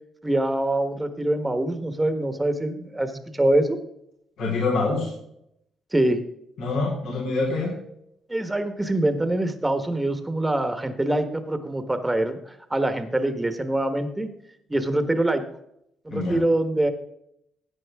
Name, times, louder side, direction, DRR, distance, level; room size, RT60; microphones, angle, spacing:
voice 1, 0.2-3.8 5.9-6.2 8.3-12.4 12.7-14.3 14.7-15.4 16.0-16.9, right 1 dB, 15° right, 8 dB, 1.4 m, -24 dB
voice 2, 4.4-5.1 6.6-7.7 16.1-16.4, left 3 dB, 80° left, -4 dB, 4.1 m, -25 dB
14.0 x 9.0 x 3.6 m, 0.76 s
cardioid pair, 90°, 0 cm